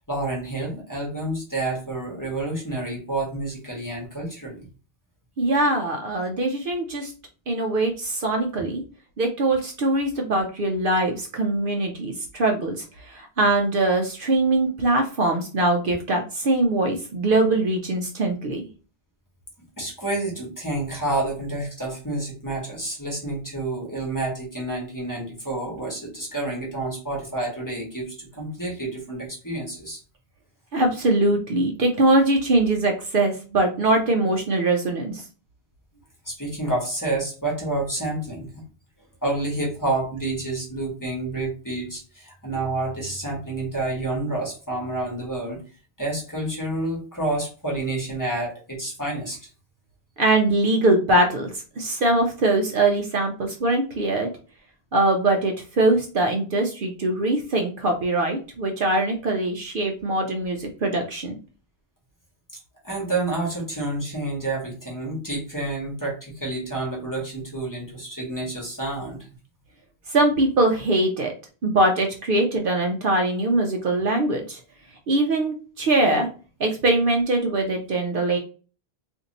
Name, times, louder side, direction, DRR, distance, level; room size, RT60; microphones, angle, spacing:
voice 1, 0.1-4.7 19.8-30.0 36.2-38.6 39.2-45.6 46.0-49.4 62.8-69.3, right 2 dB, 20° left, -2 dB, 1.1 m, -29 dB
voice 2, 5.4-7.1 7.5-8.8 9.2-18.7 30.7-35.2 50.2-54.3 54.9-61.4 70.1-71.3 71.6-74.6 75.1-76.3 76.6-78.4, right 2 dB, 60° right, 2 dB, 0.7 m, -22 dB
2.7 x 2.5 x 4.0 m, 0.37 s
omnidirectional pair, 1.1 m